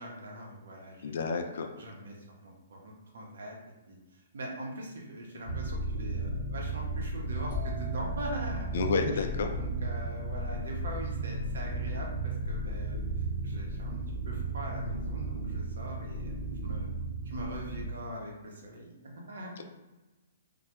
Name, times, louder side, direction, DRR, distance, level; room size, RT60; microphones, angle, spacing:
voice 1, 0.0-1.2 1.8-3.6 3.9-8.7 9.1-9.2 9.5-13.1 13.4-16.9 17.2-19.6, right 1 dB, 80° right, -1 dB, 0.7 m, -42 dB
voice 2, 1.0-1.7 8.7-9.5 19.6-19.7, left 4 dB, 65° left, 5 dB, 0.3 m, -30 dB
sound 1, 5.5-17.9, right 2 dB, 45° right, 0.9 m, -34 dB
sound 2, 7.5-11.3, left 4 dB, 5° right, 0.7 m, -45 dB
2.2 x 2.1 x 2.9 m, 1.1 s
hypercardioid pair, 150°, 0 cm